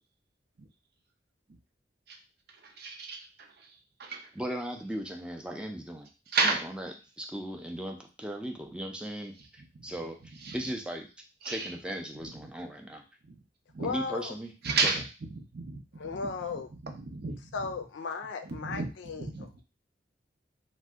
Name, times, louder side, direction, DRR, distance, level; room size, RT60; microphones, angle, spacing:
voice 1, 2.5-4.3 6.3-6.7 10.4-10.7 11.4-11.7 12.1-12.5 13.2-13.4 13.7-13.9 14.6-17.6 18.5-19.6, right 4 dB, 60° right, 3 dB, 0.6 m, -33 dB
voice 2, 4.4-6.1 6.4-9.3 9.8-10.2 10.5-11.1 11.5-13.0 13.8-14.5 14.8-14.9, equal, 5° right, 2 dB, 0.4 m, -37 dB
voice 3, 13.8-14.3 16.0-16.7 17.5-19.6, left 4 dB, 80° left, 7 dB, 0.4 m, -36 dB
2.6 x 2.1 x 3.4 m, 0.31 s
head